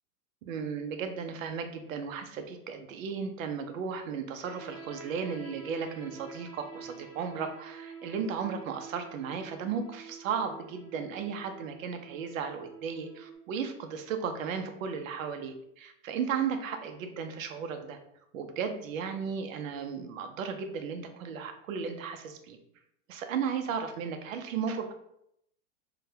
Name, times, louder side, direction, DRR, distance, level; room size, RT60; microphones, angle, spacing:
voice 1, 0.4-18.0 18.3-22.6 23.1-24.9, right 6 dB, 65° right, 7 dB, 0.6 m, -35 dB
sound 1, 4.4-13.3, right 5 dB, 10° left, 1.0 m, -48 dB
3.8 x 2.2 x 2.7 m, 0.75 s
supercardioid pair, 160°, 42 cm